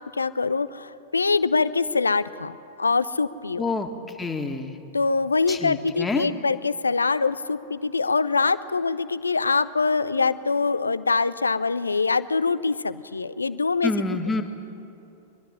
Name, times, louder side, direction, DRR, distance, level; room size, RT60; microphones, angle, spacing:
voice 1, 0.2-3.7 4.9-13.9, left 4 dB, 85° left, 15 dB, 0.5 m, -24 dB
voice 2, 3.6-3.9 4.2-4.8 5.5-6.3 13.8-14.4, left 3 dB, 15° left, 4 dB, 1.9 m, -27 dB
22.5 x 12.5 x 9.9 m, 2.9 s
figure-of-eight pair, 95°, 0 cm